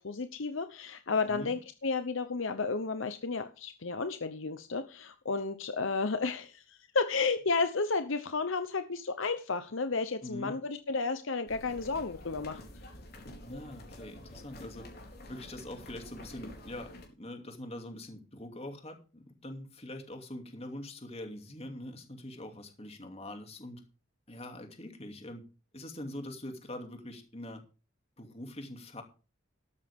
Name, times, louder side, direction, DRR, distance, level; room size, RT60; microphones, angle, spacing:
voice 1, 0.0-12.6, left 4 dB, 65° left, 10 dB, 0.9 m, -32 dB
voice 2, 10.2-10.5 13.4-14.9 15.3-16.9 17.2-23.8 24.3-25.4 25.7-27.6 28.2-29.0, left 1 dB, 30° left, 5 dB, 2.6 m, -43 dB
sound 1, 11.5-17.1, left 1 dB, 45° left, 4.0 m, -48 dB
13.0 x 12.5 x 3.6 m, 0.34 s
head